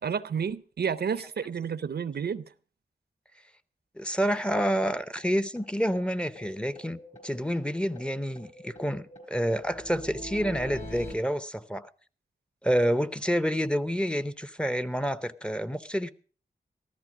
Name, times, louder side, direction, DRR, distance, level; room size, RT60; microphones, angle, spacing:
voice 1, 0.0-2.4, right 7 dB, 85° right, 0.6 m, -30 dB
voice 2, 4.0-11.9 12.6-16.1, equal, 5° left, 0.7 m, -28 dB
sound 1, 5.2-5.3 5.6-5.7 6.0-6.1 6.4-7.7 8.0-11.1, equal, 45° left, 4.3 m, -44 dB
14.0 x 13.5 x 4.9 m
wide cardioid pair, 80°, 16 cm